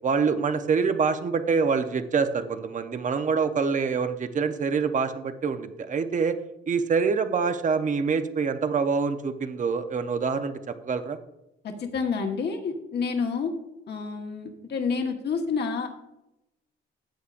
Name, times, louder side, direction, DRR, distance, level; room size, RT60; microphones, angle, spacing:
voice 1, 0.0-6.4 6.7-11.2, right 5 dB, 40° right, 9 dB, 0.8 m, -25 dB
voice 2, 11.6-13.5 13.9-15.9, left 5 dB, 60° left, 2 dB, 1.4 m, -29 dB
14.0 x 8.1 x 2.5 m, 0.89 s
cardioid pair, 90°, 20 cm